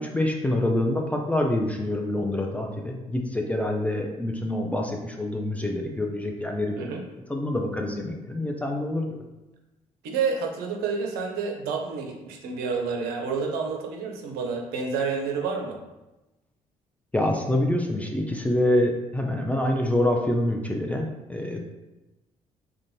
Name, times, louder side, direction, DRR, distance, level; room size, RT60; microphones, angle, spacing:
voice 1, 0.0-6.9 7.3-9.2 17.1-21.6, left 1 dB, 10° left, 1 dB, 0.4 m, -26 dB
voice 2, 10.0-15.8, right 5 dB, 60° right, 2 dB, 0.5 m, -29 dB
2.5 x 2.2 x 3.0 m, 1.0 s
figure-of-eight pair, 45°, 18 cm